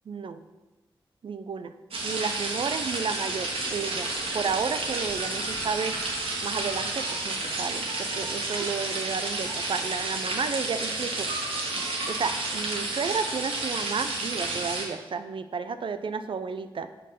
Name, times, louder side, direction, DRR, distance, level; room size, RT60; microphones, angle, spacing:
voice 1, 0.1-0.4 1.2-1.7 2.0-6.0 6.4-11.3 11.8-16.9, right 5 dB, 65° right, 11 dB, 0.4 m, -32 dB
sound 1, 1.9-14.8, right 2 dB, 80° right, 1.2 m, -31 dB
4.8 x 4.5 x 5.5 m, 1.2 s
cardioid pair, 45°, 9 cm